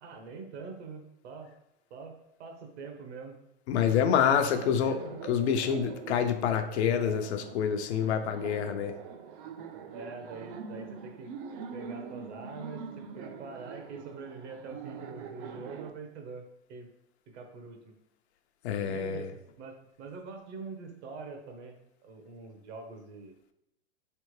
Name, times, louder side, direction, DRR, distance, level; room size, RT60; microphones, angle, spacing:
voice 1, 0.0-1.5 1.9-3.4 3.8-4.1 4.6-5.2 5.6-5.8 9.9-11.3 11.7-16.4 16.7-16.9 17.3-17.9 18.8-19.3 19.6-21.7 22.0-23.3, right 4 dB, 70° right, 4 dB, 1.0 m, -44 dB
voice 2, 3.7-5.0 5.3-9.0 18.6-19.3, left 8 dB, 70° left, 7 dB, 0.6 m, -27 dB
Laughter, 5.0-15.9, right 6 dB, 50° right, 0.5 m, -43 dB
3.6 x 3.4 x 3.1 m, 0.80 s
hypercardioid pair, 130°, 35 cm